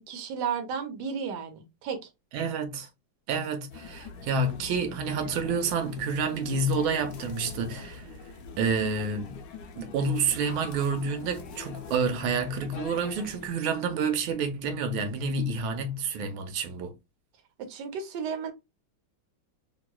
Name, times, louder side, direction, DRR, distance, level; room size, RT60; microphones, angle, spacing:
voice 1, 0.1-2.0 17.6-18.5, right 6 dB, 70° right, 1.2 m, -33 dB
voice 2, 2.3-2.9 3.3-8.1 8.6-9.4 9.8-16.9, right 4 dB, 85° right, 1.4 m, -29 dB
sound 1, 3.7-13.5, left 5 dB, 70° left, 1.2 m, -43 dB
3.1 x 2.9 x 2.2 m
omnidirectional pair, 2.2 m